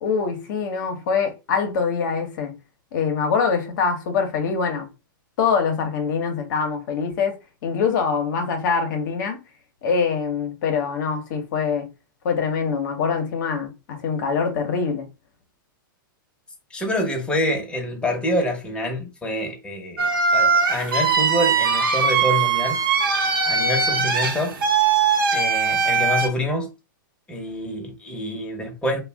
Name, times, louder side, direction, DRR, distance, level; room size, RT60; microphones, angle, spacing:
voice 1, 0.0-2.5 2.9-4.9 5.4-7.3 7.6-9.4 9.8-11.9 12.2-15.0, left 5 dB, 60° left, 0.7 m, -24 dB
voice 2, 16.7-22.8 23.4-24.6 25.3-26.7 27.3-29.0, left 1 dB, 10° left, 0.8 m, -26 dB
sound 1, 20.0-26.3, right 5 dB, 80° right, 0.8 m, -20 dB
2.4 x 2.1 x 3.3 m
hypercardioid pair, 120°, 11 cm